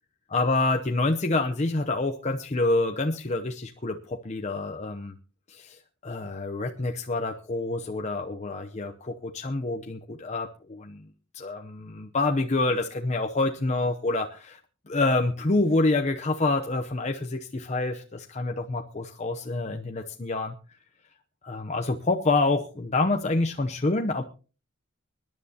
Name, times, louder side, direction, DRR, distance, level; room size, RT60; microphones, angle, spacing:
voice 1, 0.3-5.1 5.5-11.0 11.3-14.6 14.9-20.5 21.4-24.2, left 2 dB, 35° left, 4 dB, 0.7 m, -27 dB
24.5 x 10.5 x 2.8 m, 0.36 s
head